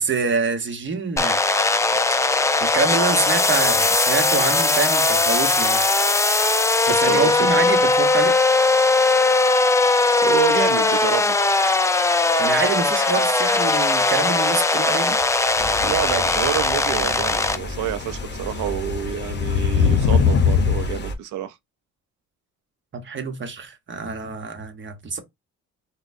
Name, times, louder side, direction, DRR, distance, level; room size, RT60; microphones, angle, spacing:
voice 1, 0.0-1.7 2.6-5.8 6.9-8.4 12.4-15.2 22.9-25.2, right 4 dB, 40° right, 1.0 m, -26 dB
sound 1, 1.2-17.6, left 3 dB, 10° left, 0.3 m, -19 dB
voice 2, 6.9-7.9 10.1-11.4 15.8-21.6, right 10 dB, 85° right, 0.6 m, -28 dB
sound 2, 15.6-21.1, left 1 dB, 35° left, 0.8 m, -33 dB
sound 3, 15.8-16.5 18.7-21.0, left 7 dB, 75° left, 0.7 m, -20 dB
3.8 x 2.2 x 2.6 m
cardioid pair, 90°, 30 cm